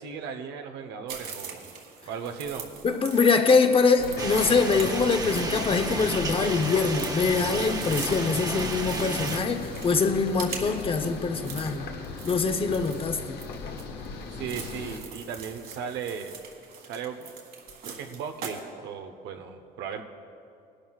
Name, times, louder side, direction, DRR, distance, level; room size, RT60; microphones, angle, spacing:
voice 1, 0.0-1.7 2.0-2.7 14.3-16.3 16.8-17.3 17.8-20.0, right 7 dB, 85° right, 5 dB, 0.9 m, -36 dB
sound 1, 1.1-18.6, right 6 dB, 60° right, 1.8 m, -43 dB
voice 2, 2.8-11.9 12.3-13.4, left 4 dB, 35° left, 8 dB, 0.8 m, -24 dB
sound 2, 4.0-15.0, left 4 dB, 70° left, 1.2 m, -38 dB
sound 3, 4.2-9.4, right 3 dB, 20° right, 0.9 m, -33 dB
19.5 x 11.5 x 2.4 m, 2.5 s
cardioid pair, 110°, 17 cm